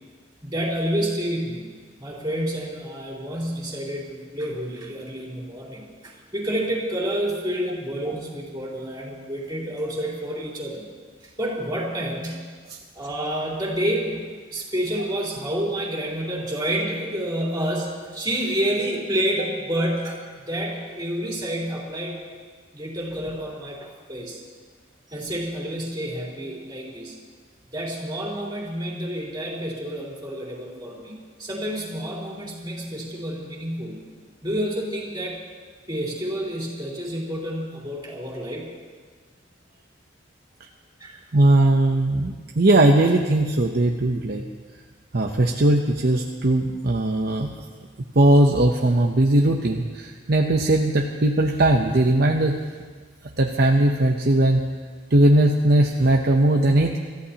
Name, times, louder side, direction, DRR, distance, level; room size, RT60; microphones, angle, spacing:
voice 1, 0.4-1.7 2.0-10.8 11.4-12.5 12.9-20.2 20.5-22.2 22.7-24.4 25.1-27.1 27.7-34.0 34.4-35.4 35.9-38.7 41.0-41.2 42.1-42.2, right 1 dB, 20° right, -5 dB, 3.6 m, -29 dB
voice 2, 41.3-44.4 45.1-47.5 48.2-52.5 53.4-54.6 55.1-57.0, right 1 dB, 55° right, 2 dB, 0.8 m, -19 dB
27.0 x 14.0 x 2.9 m, 1.5 s
head